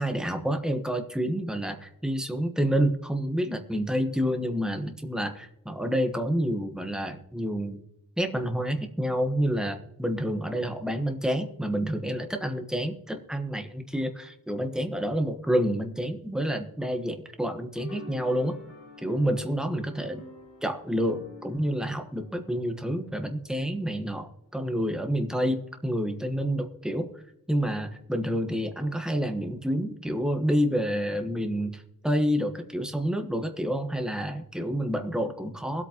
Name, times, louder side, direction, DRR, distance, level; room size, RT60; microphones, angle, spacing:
voice 1, 0.0-7.8 8.2-18.5 19.0-20.2 20.6-27.1 27.5-35.8, equal, ahead, 5 dB, 1.2 m, -28 dB
sound 1, 17.8-23.3, left 2 dB, 60° left, 3.3 m, -46 dB
22.0 x 8.5 x 3.0 m, 0.85 s
wide cardioid pair, 155°, 34 cm